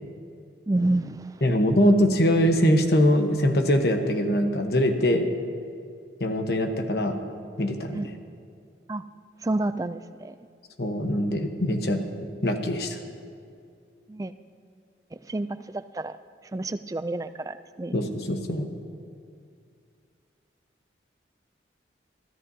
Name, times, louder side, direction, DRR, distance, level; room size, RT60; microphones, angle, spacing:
voice 1, 0.7-1.4 7.9-8.1 8.9-9.0 9.4-10.3 14.1-14.3 15.2-16.1 16.5-17.9, right 2 dB, 20° right, 11 dB, 0.3 m, -29 dB
voice 2, 1.4-5.3 6.2-7.2 7.6-8.0 10.8-12.0 12.4-13.0 17.9-18.7, equal, 60° left, 5 dB, 1.1 m, -22 dB
23.5 x 14.0 x 2.8 m, 2.3 s
head